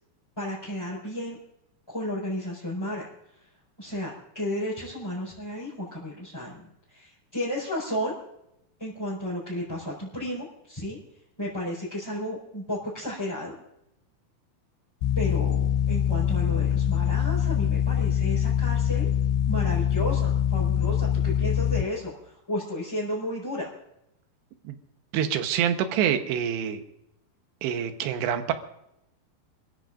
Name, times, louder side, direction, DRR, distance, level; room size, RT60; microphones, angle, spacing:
voice 1, 0.4-1.4 1.9-3.1 3.8-8.1 8.8-11.0 11.4-13.5 15.2-19.1 19.5-23.7, left 1 dB, 5° left, -8 dB, 4.2 m, -33 dB
sound 1, 15.0-21.8, left 9 dB, 80° left, 2.8 m, -24 dB
voice 2, 25.1-26.8 27.6-28.5, right 9 dB, 85° right, 7 dB, 3.3 m, -26 dB
29.0 x 14.5 x 2.5 m, 0.83 s
omnidirectional pair, 4.9 m